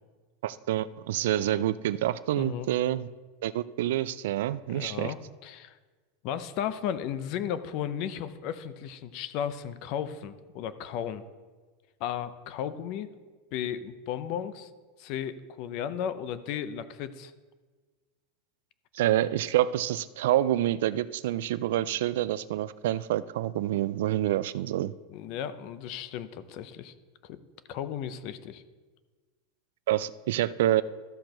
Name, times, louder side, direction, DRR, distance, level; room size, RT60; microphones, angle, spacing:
voice 1, 0.4-3.1 3.4-5.1 18.9-24.9 29.9-30.8, right 13 dB, 75° right, 16 dB, 0.3 m, -27 dB
voice 2, 2.4-2.7 4.7-5.2 5.4-5.8 6.2-11.2 12.0-13.1 13.5-14.7 15.0-17.3 25.1-26.9 27.2-27.4 27.7-28.6, left 9 dB, 45° left, 13 dB, 0.6 m, -34 dB
13.0 x 4.5 x 6.5 m, 1.4 s
supercardioid pair, 165°, 0 cm